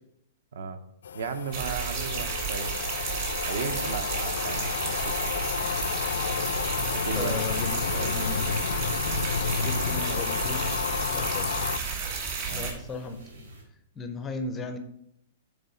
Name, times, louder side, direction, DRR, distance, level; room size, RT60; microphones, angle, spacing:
sound 1, 1.0-11.8, left 6 dB, 90° left, 0.4 m, -31 dB
voice 1, 1.1-2.7 3.4-5.3 6.9-7.4 7.9-8.2 12.5-12.7, right 5 dB, 65° right, 10 dB, 0.7 m, -35 dB
sound 2, 1.5-12.7, right 5 dB, 35° right, 1.6 m, -32 dB
sound 3, 5.4-13.6, right 2 dB, 80° right, 2.9 m, -49 dB
voice 2, 7.1-8.6 9.6-10.7 11.1-11.5 12.5-13.5 14.0-14.8, left 3 dB, 10° left, 7 dB, 0.4 m, -36 dB
6.7 x 4.0 x 5.7 m, 0.78 s
hypercardioid pair, 175°, 0 cm